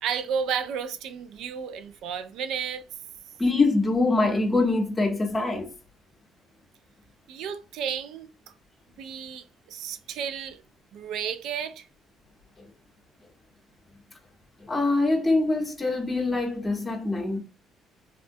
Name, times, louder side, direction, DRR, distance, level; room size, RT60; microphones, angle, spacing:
voice 1, 0.0-2.8 7.3-8.3 9.0-10.6 10.9-11.9, right 7 dB, 70° right, 0.3 m, -32 dB
voice 2, 3.4-5.7 14.7-17.4, left 2 dB, 15° left, 0.8 m, -24 dB
3.5 x 2.1 x 2.6 m
cardioid pair, 135°, 0 cm